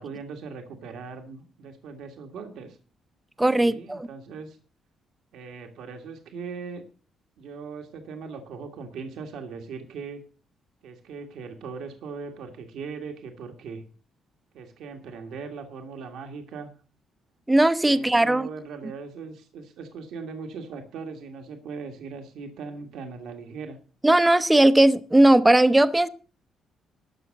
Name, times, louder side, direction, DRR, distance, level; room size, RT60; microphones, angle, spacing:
voice 1, 0.0-2.8 3.6-4.6 5.3-6.8 7.4-10.2 10.8-13.8 14.5-16.7 17.9-23.8, right 5 dB, 80° right, 1.7 m, -39 dB
voice 2, 3.4-4.1 17.5-18.5 24.0-26.1, right 1 dB, 10° right, 0.6 m, -18 dB
12.5 x 6.1 x 7.6 m
cardioid pair, 90°, 0 cm